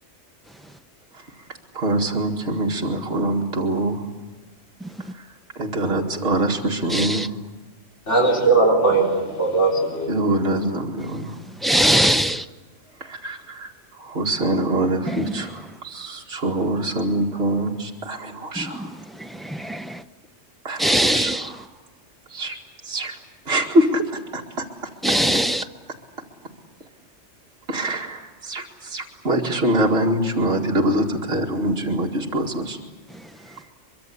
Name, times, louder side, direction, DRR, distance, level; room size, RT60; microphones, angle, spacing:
voice 1, 1.7-4.0 5.6-7.3 10.1-11.4 13.0-13.7 14.0-18.9 20.6-21.6 22.3-22.6 22.8-23.2 23.5-24.1 24.3-24.7 27.7-32.8, right 1 dB, 60° right, -1 dB, 2.4 m, -24 dB
voice 2, 6.9-7.3 11.6-12.4 15.1-15.2 18.6-20.0 20.8-21.5 25.0-25.6, equal, ahead, 7 dB, 0.4 m, -21 dB
voice 3, 8.1-10.1, right 3 dB, 70° left, -4 dB, 4.6 m, -19 dB
24.0 x 23.5 x 8.5 m, 1.2 s
omnidirectional pair, 1.3 m